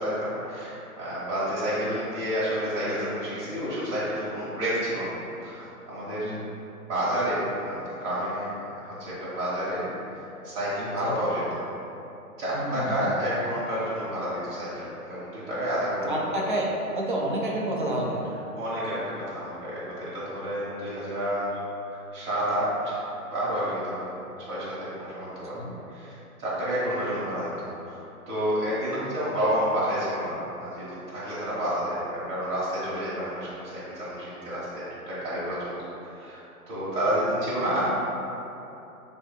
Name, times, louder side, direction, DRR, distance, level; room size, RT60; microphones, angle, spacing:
voice 1, 0.0-5.1 5.4-6.3 6.9-9.9 10.1-11.4 12.4-16.1 18.5-21.5 21.8-23.0 23.3-24.1 24.5-25.5 25.9-26.1 26.4-27.5 27.8-37.9, equal, 20° right, -10 dB, 1.3 m, -30 dB
voice 2, 12.5-13.1 16.0-16.6 16.9-18.3 25.5-25.7, right 1 dB, 35° right, -2 dB, 0.4 m, -29 dB
6.5 x 2.8 x 2.2 m, 2.9 s
figure-of-eight pair, 135°, 45 cm